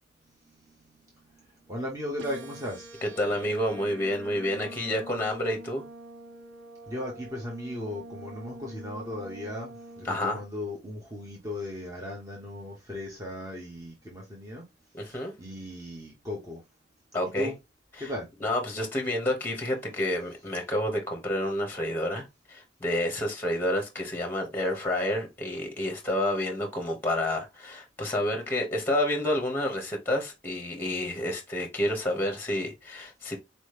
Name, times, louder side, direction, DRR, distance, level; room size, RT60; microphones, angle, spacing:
voice 1, 1.3-2.9 6.9-14.6 15.1-16.6 17.2-17.5 18.0-18.3, left 1 dB, 20° right, 1.0 m, -37 dB
sound 1, 2.2-10.2, right 1 dB, 85° right, 0.7 m, -45 dB
voice 2, 3.0-5.8 10.0-10.4 14.9-15.3 17.1-17.5 18.0-18.1 18.4-33.4, left 1 dB, 10° left, 1.0 m, -29 dB
4.2 x 3.0 x 3.3 m
head